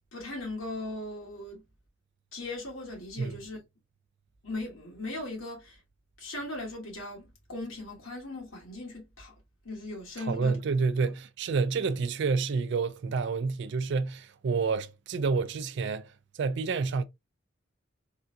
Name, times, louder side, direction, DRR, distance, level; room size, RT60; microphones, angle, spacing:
voice 1, 0.1-1.6 2.3-3.6 4.4-5.8 6.2-9.3 9.6-10.6, left 2 dB, 85° left, 1.8 m, -38 dB
voice 2, 10.3-16.1 16.4-17.0, right 4 dB, 60° right, 0.4 m, -29 dB
3.6 x 2.3 x 2.6 m
head